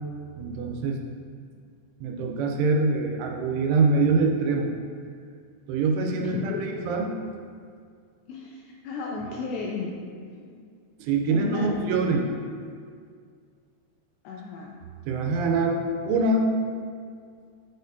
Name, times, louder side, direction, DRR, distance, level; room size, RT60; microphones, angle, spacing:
voice 1, 0.4-1.0 2.0-4.7 5.7-6.5 6.9-7.1 11.0-12.3 15.1-16.5, right 3 dB, 85° right, 1 dB, 3.1 m, -24 dB
voice 2, 6.3-6.9 8.3-10.0 10.3-10.7 11.3-12.0 14.2-14.8, left 4 dB, 85° left, -2 dB, 2.5 m, -34 dB
8.7 x 4.3 x 2.6 m, 2.1 s
omnidirectional pair, 5.4 m